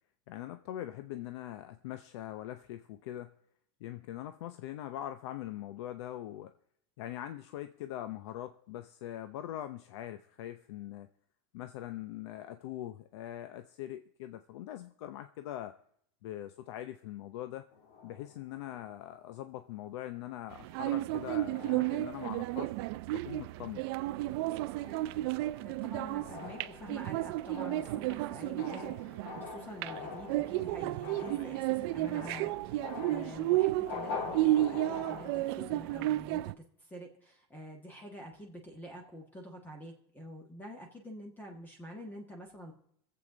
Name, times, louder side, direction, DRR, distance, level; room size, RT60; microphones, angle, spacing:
voice 1, 0.3-3.3 3.8-6.5 7.0-11.1 11.5-15.8 16.2-17.6 18.0-22.7 23.1-23.8, left 12 dB, 80° left, 10 dB, 0.7 m, -42 dB
sound 1, 17.7-19.6 20.2-20.4 20.8-21.1 21.5-22.8 23.3-23.6 24.0-35.6, left 4 dB, 60° left, 1.8 m, -45 dB
sound 2, 20.5-36.5, right 16 dB, 65° right, 0.4 m, -33 dB
voice 2, 25.6-42.7, equal, 10° left, 2 dB, 1.7 m, -47 dB
23.0 x 7.9 x 3.9 m, 0.67 s
supercardioid pair, 145°, 14 cm